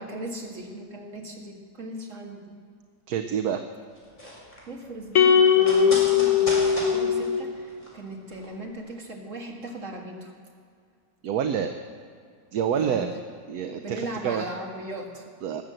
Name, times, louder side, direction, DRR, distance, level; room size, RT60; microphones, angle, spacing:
voice 1, 0.0-2.6 4.7-10.3 12.7-13.2 13.8-15.3, right 1 dB, 45° right, 0 dB, 2.3 m, -38 dB
voice 2, 3.1-3.6 11.2-11.7 12.5-13.1 13.5-14.4 15.4-15.6, right 8 dB, 70° right, 6 dB, 1.1 m, -27 dB
sound 1, 3.9-8.5 8.8-8.9, equal, 20° left, 4.4 m, -37 dB
sound 2, 5.1-7.6, left 7 dB, 55° left, 1.1 m, -20 dB
19.0 x 7.8 x 7.6 m, 2.2 s
omnidirectional pair, 1.9 m